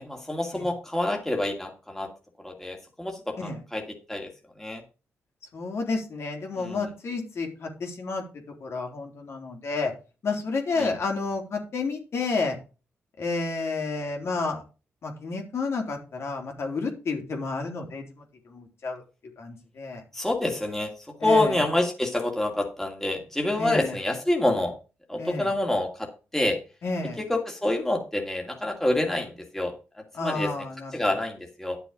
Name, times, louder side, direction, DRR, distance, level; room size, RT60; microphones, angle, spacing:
voice 1, 0.0-2.1 2.4-4.3 4.6-4.8 6.6-6.9 10.8-10.9 20.1-24.7 25.1-26.6 27.2-30.5 30.9-31.8, left 1 dB, 5° left, 1 dB, 2.5 m, -27 dB
voice 2, 5.5-8.2 8.6-9.9 10.2-12.6 13.2-14.6 15.0-18.0 18.5-19.0 19.4-20.0 21.2-21.6 23.6-24.0 25.2-25.5 26.8-27.2 30.1-31.1, left 3 dB, 60° left, 2 dB, 3.6 m, -30 dB
11.0 x 7.0 x 5.1 m, 0.32 s
cardioid pair, 95°, 5 cm